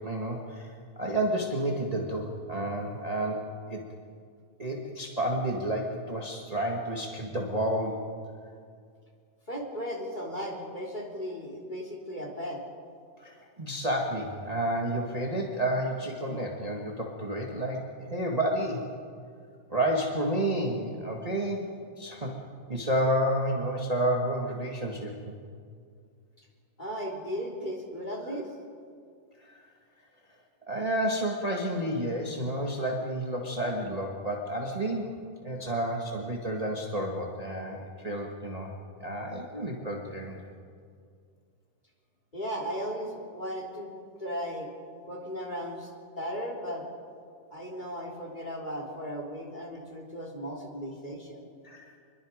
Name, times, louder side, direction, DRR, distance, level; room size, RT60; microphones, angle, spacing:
voice 1, 0.0-3.8 4.6-8.0 13.2-18.8 19.7-21.7 22.0-22.3 22.7-25.3 29.5-29.7 30.7-38.7 39.0-40.4 51.6-51.9, right 1 dB, 25° right, -1 dB, 0.8 m, -30 dB
voice 2, 9.5-12.6 26.8-28.5 42.3-43.9 44.2-44.7 45.1-45.9 46.2-46.8 47.5-51.4, equal, 15° left, -1 dB, 3.0 m, -36 dB
26.5 x 22.0 x 5.2 m, 2.2 s
omnidirectional pair, 3.7 m